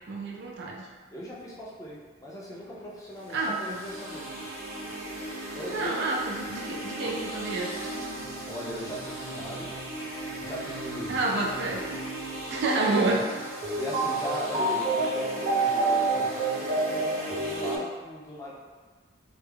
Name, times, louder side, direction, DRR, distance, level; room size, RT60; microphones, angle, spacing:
voice 1, 0.1-0.9 3.3-3.8 5.7-7.7 11.1-11.8 12.5-13.2, right 2 dB, 60° right, -1 dB, 0.4 m, -28 dB
voice 2, 1.1-4.4 5.5-5.9 8.5-9.7 10.4-11.4 12.8-13.0 13.7-18.5, equal, 15° left, -6 dB, 0.5 m, -38 dB
sound 1, 3.4-17.8, right 2 dB, 35° right, 0.8 m, -32 dB
sound 2, 3.8-12.6, right 1 dB, 75° left, 0.6 m, -49 dB
2.3 x 2.0 x 3.3 m, 1.4 s
head